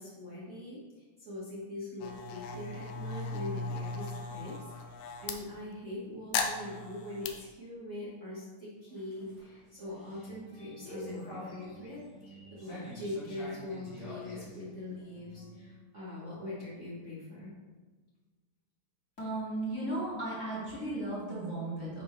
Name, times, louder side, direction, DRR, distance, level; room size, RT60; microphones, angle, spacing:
voice 1, 0.0-4.9 5.2-12.0 12.5-17.5, left 2 dB, 75° right, -10 dB, 0.7 m, -42 dB
sound 1, 2.0-5.4 6.3-7.3, left 4 dB, 80° left, 2.2 m, -37 dB
sound 2, 8.9-15.7, right 1 dB, 55° left, 3.0 m, -47 dB
voice 2, 19.2-22.0, right 1 dB, 25° left, -9 dB, 2.1 m, -35 dB
10.5 x 4.4 x 3.2 m, 1.3 s
omnidirectional pair, 4.2 m